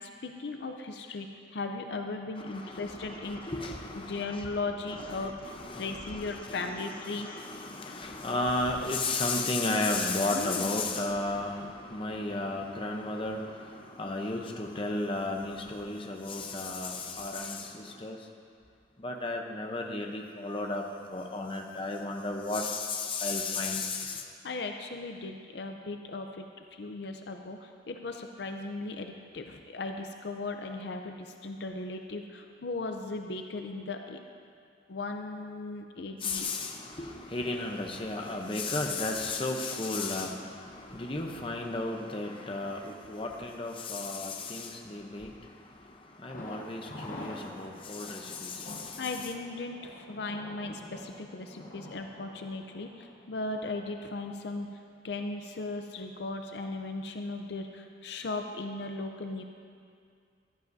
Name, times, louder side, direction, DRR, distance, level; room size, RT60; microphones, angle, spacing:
voice 1, 0.0-3.4 3.9-7.4 10.3-10.7 24.1-26.5 26.7-34.2 34.9-36.5 40.4-40.5 49.0-54.7 55.0-59.4, left 3 dB, 65° left, 4 dB, 0.6 m, -37 dB
voice 2, 2.5-4.4 4.9-13.4 14.0-18.2 19.0-20.8 21.1-24.2 36.2-40.4 40.7-45.3 46.2-48.6, left 2 dB, 30° left, 2 dB, 0.7 m, -33 dB
Thunder, 46.3-54.1 54.4-54.5 54.9-55.0, left 1 dB, 45° left, 1.4 m, -46 dB
14.5 x 12.0 x 2.7 m, 2.3 s
head